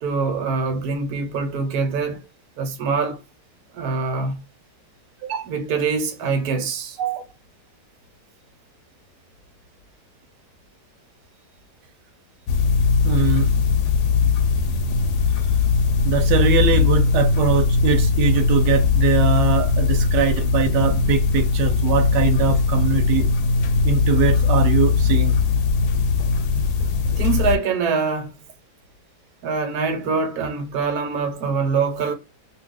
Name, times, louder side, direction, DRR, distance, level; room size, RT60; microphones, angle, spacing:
voice 1, 0.0-2.2 2.6-3.2 3.7-4.4 5.4-7.0 27.2-28.3 29.4-32.1, right 4 dB, 70° right, 1.3 m, -24 dB
sound 1, 12.5-27.6, left 5 dB, 75° left, 1.1 m, -19 dB
voice 2, 13.0-13.5 16.0-23.3 23.8-25.3, right 5 dB, 90° right, 1.2 m, -22 dB
2.7 x 2.4 x 3.6 m
omnidirectional pair, 1.8 m